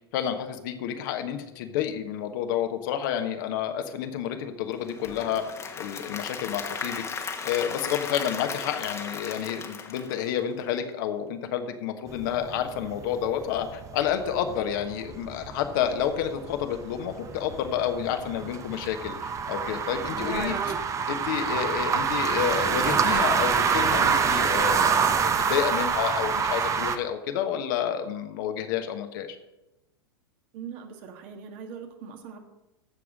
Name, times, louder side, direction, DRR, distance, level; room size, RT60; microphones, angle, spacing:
voice 1, 0.1-5.4 5.7-20.6 21.1-29.4, left 9 dB, 55° left, 7 dB, 1.3 m, -30 dB
Applause / Crowd, 4.7-10.8, left 5 dB, 20° left, 1.3 m, -36 dB
sound 1, 12.1-27.0, right 6 dB, 25° right, 0.9 m, -26 dB
voice 2, 20.4-20.8 30.5-32.4, right 7 dB, 50° right, 5 dB, 1.8 m, -41 dB
14.5 x 4.9 x 6.4 m, 0.99 s
hypercardioid pair, 95°, 13 cm